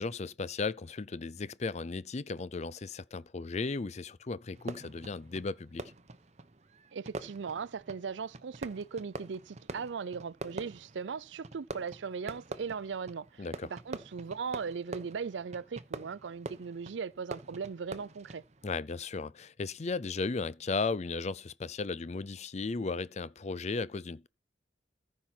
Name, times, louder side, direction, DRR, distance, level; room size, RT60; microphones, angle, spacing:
voice 1, 0.0-5.9 13.4-13.7 18.6-24.3, left 4 dB, 40° left, 0.5 m, -35 dB
Fireworks, 4.5-18.8, right 2 dB, 40° right, 0.9 m, -46 dB
voice 2, 6.9-18.4, right 5 dB, 90° right, 0.5 m, -38 dB
14.5 x 5.6 x 4.4 m
head